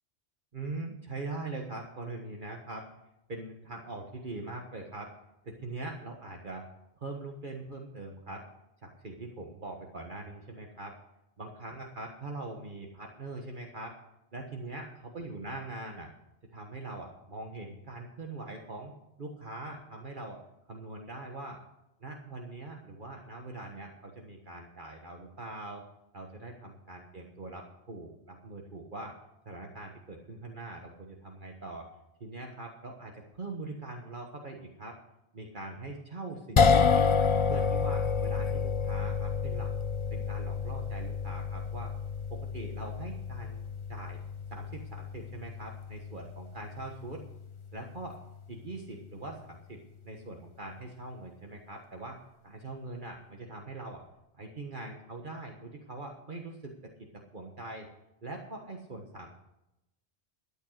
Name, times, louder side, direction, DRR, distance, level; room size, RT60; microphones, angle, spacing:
voice 1, 0.5-2.9 3.3-5.1 5.4-6.7 7.0-8.4 8.8-10.9 11.4-13.9 14.3-16.1 16.5-18.9 19.2-20.4 20.7-21.6 22.0-25.8 26.1-29.1 29.4-31.9 32.2-34.9 35.3-37.1 37.5-39.7 40.1-41.9 42.3-44.2 44.5-47.2 47.7-48.2 48.5-54.0 54.3-56.9 57.3-57.9 58.2-59.3, right 2 dB, 45° right, 2 dB, 1.5 m, -42 dB
sound 1, 36.6-48.9, left 5 dB, 35° left, 0.6 m, -30 dB
13.0 x 8.8 x 6.5 m, 0.88 s
omnidirectional pair, 1.2 m